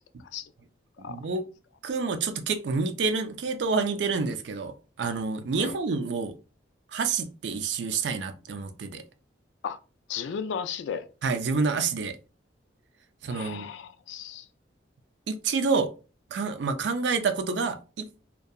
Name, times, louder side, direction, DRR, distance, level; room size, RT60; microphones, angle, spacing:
voice 1, 1.0-1.4 1.8-6.3 6.9-9.0 11.2-12.2 13.2-13.7 15.3-15.9 16.3-18.2, right 4 dB, 75° right, 0.4 m, -28 dB
voice 2, 10.1-11.1 13.3-14.5, left 7 dB, 80° left, 0.3 m, -34 dB
2.6 x 2.2 x 2.3 m
head